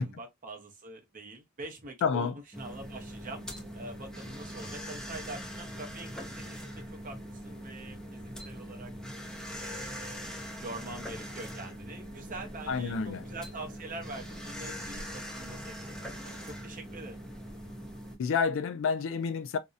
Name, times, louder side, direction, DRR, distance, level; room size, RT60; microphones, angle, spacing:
voice 1, 0.0-3.4 3.7-7.2 7.4-8.9 9.6-10.3 10.6-15.8 16.0-17.2, right 2 dB, 40° right, 0.6 m, -44 dB
voice 2, 2.0-2.4 12.7-13.2 18.2-19.6, left 5 dB, 60° left, 0.3 m, -29 dB
sound 1, 2.5-18.2, equal, 5° left, 0.5 m, -42 dB
2.7 x 2.1 x 2.3 m
head